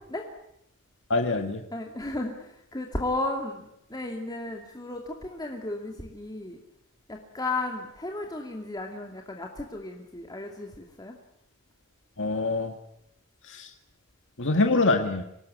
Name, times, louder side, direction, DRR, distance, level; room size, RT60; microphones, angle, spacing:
voice 1, 1.1-1.6 12.2-12.7 13.5-13.7 14.4-15.2, left 3 dB, 60° left, 5 dB, 1.9 m, -24 dB
voice 2, 1.7-3.6 3.9-6.6 7.1-11.1, left 2 dB, 20° left, 1 dB, 2.6 m, -34 dB
26.0 x 19.0 x 9.9 m, 0.79 s
head